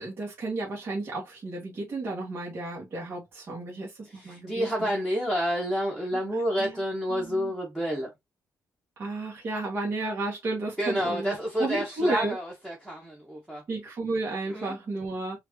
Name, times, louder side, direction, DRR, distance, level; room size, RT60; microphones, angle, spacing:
voice 1, 0.0-4.9 6.6-6.7 7.1-7.5 9.0-12.3 13.7-15.4, right 2 dB, 40° right, 1.7 m, -32 dB
voice 2, 4.1-8.1 10.8-13.6 14.5-14.8, equal, 10° right, 1.4 m, -29 dB
5.0 x 2.8 x 2.8 m
cardioid pair, 140°, 6 cm